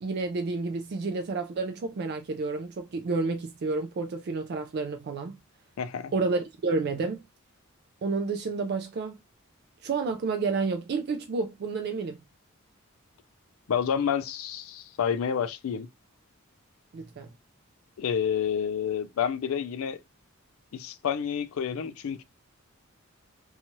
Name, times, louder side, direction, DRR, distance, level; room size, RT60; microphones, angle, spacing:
voice 1, 0.0-5.4 6.1-7.2 8.0-9.2 9.8-12.2 16.9-17.3, right 4 dB, 50° right, 0.3 m, -30 dB
voice 2, 5.8-6.1 13.7-15.9 18.0-20.0 20.7-22.2, left 7 dB, 75° left, 0.4 m, -29 dB
2.7 x 2.3 x 2.9 m
head